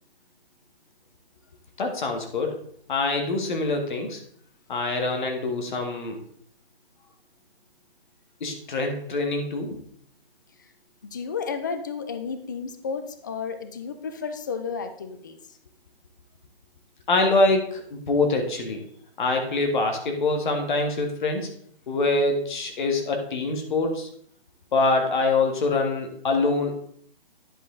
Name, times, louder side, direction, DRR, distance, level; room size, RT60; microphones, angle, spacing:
voice 1, 1.8-2.6 2.9-4.2 4.7-6.2 8.4-9.8 17.1-18.8 19.2-21.5 21.9-24.1 24.7-26.7, left 3 dB, 55° left, 3 dB, 1.7 m, -24 dB
voice 2, 11.0-15.6, left 5 dB, 20° left, 9 dB, 0.4 m, -32 dB
9.8 x 5.2 x 3.8 m, 0.62 s
figure-of-eight pair, 145°, 30 cm